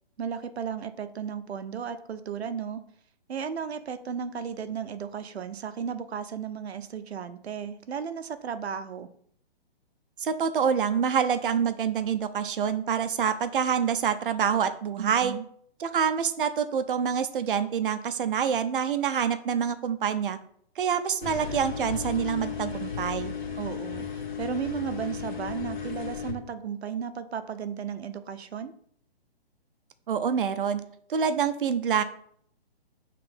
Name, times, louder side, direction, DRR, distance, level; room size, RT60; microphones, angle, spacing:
voice 1, 0.2-2.8 3.3-9.1 15.0-15.4 23.6-24.1 24.4-28.7, right 7 dB, 85° right, 11 dB, 0.7 m, -34 dB
voice 2, 10.2-15.3 15.8-20.4 20.8-23.3 30.1-30.8 31.1-32.0, right 7 dB, 55° right, 10 dB, 0.7 m, -26 dB
sound 1, 21.2-26.3, left 6 dB, 45° left, 1.7 m, -35 dB
5.9 x 3.3 x 5.2 m, 0.63 s
hypercardioid pair, 160°, 31 cm